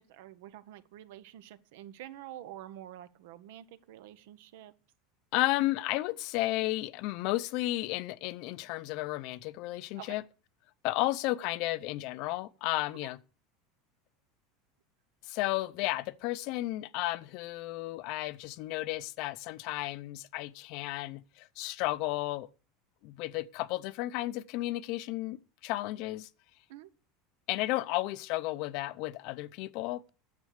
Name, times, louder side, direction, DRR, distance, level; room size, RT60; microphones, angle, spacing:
voice 1, 0.0-4.8 10.0-10.2 13.0-13.1 26.7-26.9, right 12 dB, 75° right, 0.9 m, -48 dB
voice 2, 5.3-10.2 10.8-13.2 15.2-22.5 23.0-26.3 27.5-30.1, left 17 dB, 50° left, 0.6 m, -33 dB
9.5 x 7.6 x 6.6 m
supercardioid pair, 165°, 0 cm